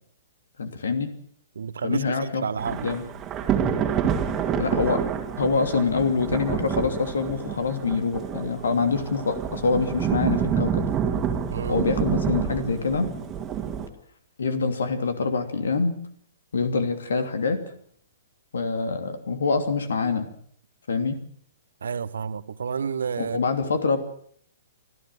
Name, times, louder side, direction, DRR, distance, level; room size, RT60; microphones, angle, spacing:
voice 1, 0.6-1.1 1.8-2.4 2.8-3.0 4.6-5.0 5.4-10.8 11.7-13.1 14.4-15.9 16.5-17.6 18.5-20.3 20.9-21.2 23.2-24.0, left 4 dB, 65° left, 9 dB, 2.9 m, -25 dB
voice 2, 1.5-2.9 11.5-11.8 21.8-23.4, right 6 dB, 65° right, 15 dB, 1.2 m, -30 dB
Thunder / Rain, 2.6-13.9, right 7 dB, 20° right, 2.3 m, -28 dB
25.0 x 14.5 x 7.7 m, 0.63 s
figure-of-eight pair, 115°, 0 cm